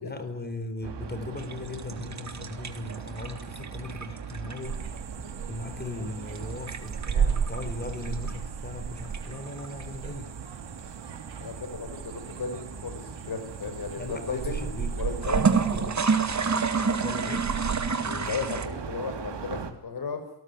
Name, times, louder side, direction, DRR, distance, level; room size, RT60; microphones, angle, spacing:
voice 1, 0.0-4.8 5.5-10.4 14.0-15.0 15.4-16.1 17.0-17.6, left 2 dB, 20° left, 9 dB, 4.3 m, -38 dB
sound 1, 0.8-19.7, right 6 dB, 65° right, 2.8 m, -40 dB
sound 2, 1.4-5.0 6.3-8.3 9.0-9.8 15.1-18.7, right 5 dB, 40° right, 2.2 m, -28 dB
sound 3, 4.6-17.9, right 7 dB, 80° right, 5.2 m, -35 dB
voice 2, 11.4-15.4 15.8-15.9 18.0-20.2, left 5 dB, 55° left, 9 dB, 5.8 m, -35 dB
27.5 x 18.5 x 9.8 m, 0.74 s
wide cardioid pair, 165°, 46 cm